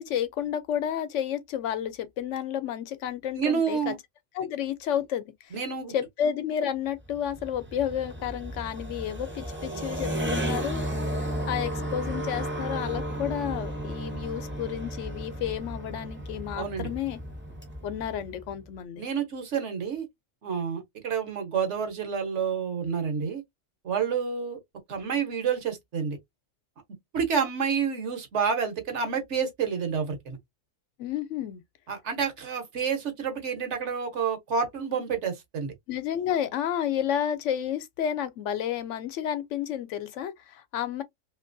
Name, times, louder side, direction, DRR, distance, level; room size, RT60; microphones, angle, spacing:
voice 1, 0.0-4.0 4.3-5.5 5.9-17.2 17.8-19.0 31.0-31.6 35.9-41.0, left 9 dB, 70° left, 1.0 m, -31 dB
voice 2, 3.3-4.0 5.5-5.9 16.6-16.9 19.0-20.1 20.4-23.4 23.8-24.6 24.9-26.2 27.1-30.4 31.9-35.7, right 6 dB, 65° right, 1.3 m, -29 dB
sound 1, 7.0-18.6, right 1 dB, 10° right, 0.6 m, -34 dB
3.0 x 2.9 x 2.5 m
omnidirectional pair, 1.3 m